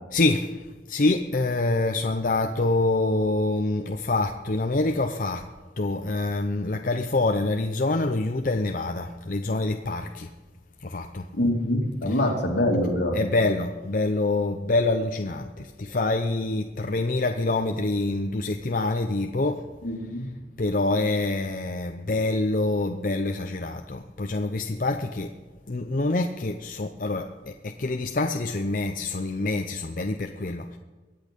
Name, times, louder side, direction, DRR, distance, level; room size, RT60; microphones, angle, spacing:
voice 1, 0.1-0.5 0.9-5.4 5.8-10.3 10.8-11.3 12.0-12.3 13.1-19.6 20.6-25.3 25.7-30.8, left 2 dB, 50° left, 5 dB, 0.6 m, -26 dB
voice 2, 11.3-13.2 19.8-20.3, left 1 dB, 75° left, 1 dB, 2.5 m, -24 dB
23.0 x 8.5 x 5.2 m, 1.4 s
head